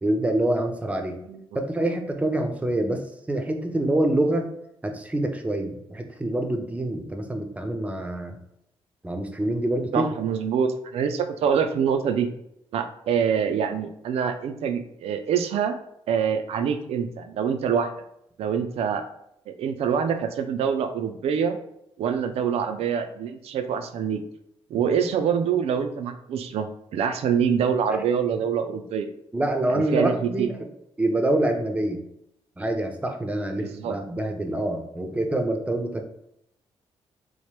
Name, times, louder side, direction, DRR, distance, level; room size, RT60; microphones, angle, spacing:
voice 1, 0.0-1.2 1.5-4.5 4.8-8.4 9.0-10.1 24.7-24.8 29.3-30.7 31.0-32.0 32.6-36.0, right 1 dB, 15° right, 4 dB, 0.5 m, -26 dB
voice 2, 9.9-12.3 12.7-15.8 16.1-17.9 18.4-19.0 19.5-21.6 22.0-24.2 24.7-26.7 26.9-29.1 29.7-30.5 33.6-34.0, right 7 dB, 75° right, 7 dB, 0.4 m, -25 dB
3.0 x 2.1 x 3.1 m, 0.77 s
cardioid pair, 70°, 10 cm